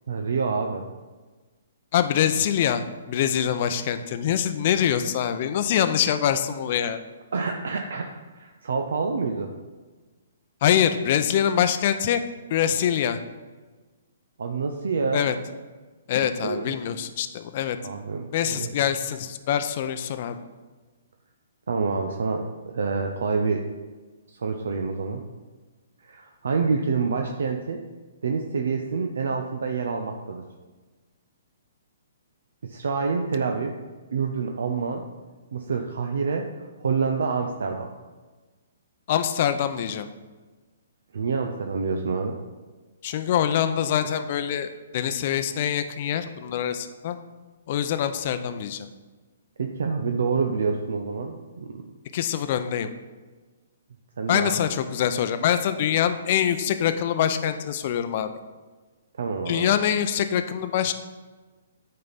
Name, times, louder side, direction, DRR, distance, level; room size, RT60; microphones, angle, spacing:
voice 1, 0.1-0.8 7.3-9.5 14.4-15.3 16.4-16.7 17.8-18.7 21.7-23.7 24.3-25.2 26.0-27.8 28.2-30.5 32.6-33.7 34.1-35.1 35.5-36.5 36.8-37.9 41.1-42.4 49.6-51.8 54.2-54.6 59.2-59.7, right 5 dB, 70° right, 4 dB, 0.6 m, -27 dB
voice 2, 1.9-7.0 10.6-12.2 12.5-13.2 15.1-15.3 16.1-17.8 18.3-20.4 39.1-40.1 43.0-47.2 47.7-48.9 52.1-52.9 54.3-58.3 59.5-60.9, left 9 dB, 45° left, 9 dB, 0.6 m, -24 dB
9.2 x 4.3 x 4.1 m, 1.3 s
hypercardioid pair, 130°, 0 cm